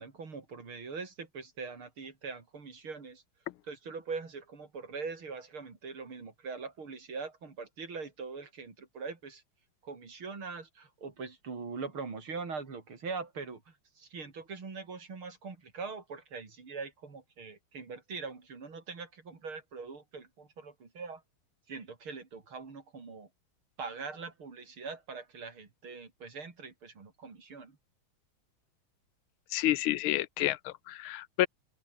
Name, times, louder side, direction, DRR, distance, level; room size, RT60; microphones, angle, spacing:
voice 1, 0.0-3.2 3.6-9.4 9.8-21.2 21.7-23.3 23.8-27.8, right 4 dB, 90° right, 4.6 m, -42 dB
voice 2, 29.5-31.5, left 15 dB, 85° left, 1.6 m, -29 dB
open air
omnidirectional pair, 2.3 m